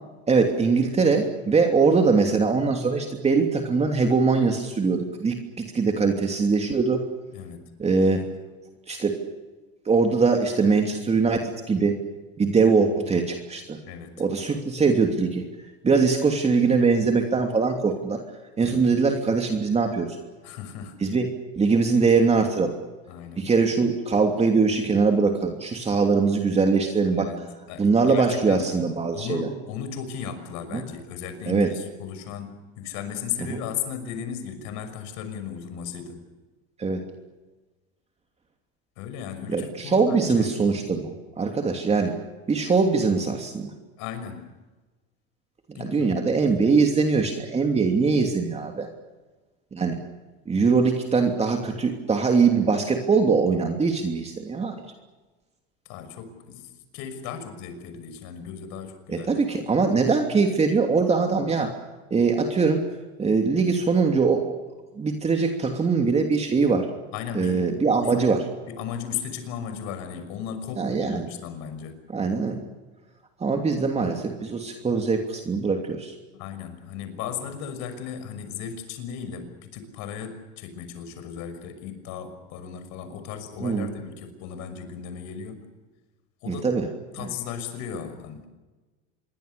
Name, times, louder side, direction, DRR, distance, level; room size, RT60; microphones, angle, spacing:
voice 1, 0.3-7.0 7.8-8.3 8.9-9.2 9.8-12.0 12.4-13.8 14.2-15.5 15.8-18.2 18.6-20.2 21.0-22.8 23.4-27.3 27.8-29.5 30.7-30.8 31.5-31.7 33.5-33.6 36.8-37.0 39.5-42.2 42.5-43.7 45.7-48.9 49.7-50.0 50.5-54.7 59.1-61.7 62.1-62.8 63.2-64.5 65.0-66.9 67.3-68.5 70.8-71.3 72.1-72.6 73.4-76.1 83.6-83.9 86.5-86.9, right 4 dB, 20° right, 3 dB, 2.9 m, -22 dB
voice 2, 20.4-21.0 23.1-23.4 27.1-28.7 29.1-36.2 39.0-40.6 44.0-44.4 45.7-46.2 55.8-59.5 67.1-67.7 68.0-68.1 68.6-72.0 76.3-85.6 86.4-86.7 87.1-88.5, left 8 dB, 60° left, 9 dB, 6.1 m, -36 dB
27.5 x 23.0 x 6.9 m, 1.2 s
supercardioid pair, 120°, 32 cm